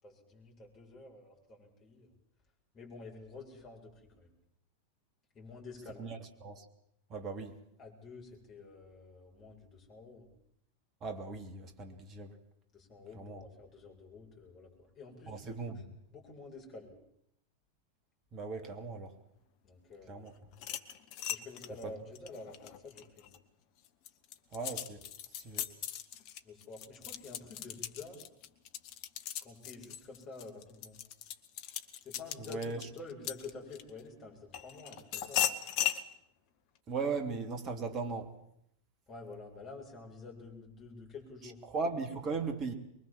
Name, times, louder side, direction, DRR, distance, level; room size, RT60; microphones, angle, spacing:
voice 1, 0.0-2.1 2.7-4.4 5.3-6.1 7.8-10.3 12.7-15.8 16.1-17.0 19.6-20.3 21.3-23.3 26.4-28.2 29.4-31.0 32.0-35.4 39.1-41.6, left 3 dB, 25° left, 0 dB, 7.7 m, -49 dB
voice 2, 6.0-6.6 7.1-7.6 11.0-12.3 13.1-13.4 15.3-15.8 18.3-19.1 20.1-20.3 21.8-21.9 24.5-25.0 25.4-25.7 32.5-32.8 36.9-38.3 41.6-42.7, right 4 dB, 30° right, 7 dB, 3.2 m, -38 dB
sound 1, 20.5-23.4 23.8-34.0 34.5-36.0, left 11 dB, 45° left, 1.5 m, -38 dB
24.0 x 22.5 x 7.6 m, 0.75 s
figure-of-eight pair, 90°, 0 cm